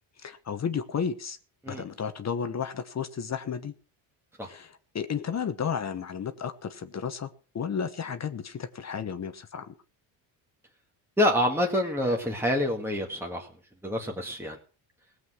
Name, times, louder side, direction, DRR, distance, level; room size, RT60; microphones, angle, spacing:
voice 1, 0.2-1.4 1.7-3.7 4.4-7.3 7.5-9.7, left 7 dB, 35° left, 10 dB, 1.1 m, -33 dB
voice 2, 11.2-13.5 13.8-14.6, left 1 dB, 5° right, 1 dB, 1.9 m, -27 dB
17.0 x 8.0 x 6.3 m, 0.40 s
cardioid pair, 100°, 45 cm